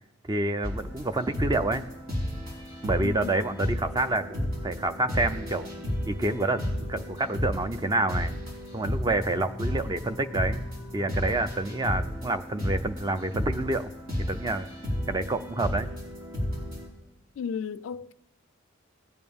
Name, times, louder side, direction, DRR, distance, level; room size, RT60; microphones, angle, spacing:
voice 1, 0.3-1.9 2.8-5.7 6.0-8.3 8.7-10.6 10.9-13.9 14.2-14.7 15.1-15.9, right 2 dB, 20° right, 0.5 m, -28 dB
sound 1, 0.6-16.9, equal, 80° right, 4.7 m, -33 dB
voice 2, 3.0-3.3 17.4-18.1, left 6 dB, 70° left, 0.3 m, -34 dB
18.5 x 8.6 x 3.6 m
head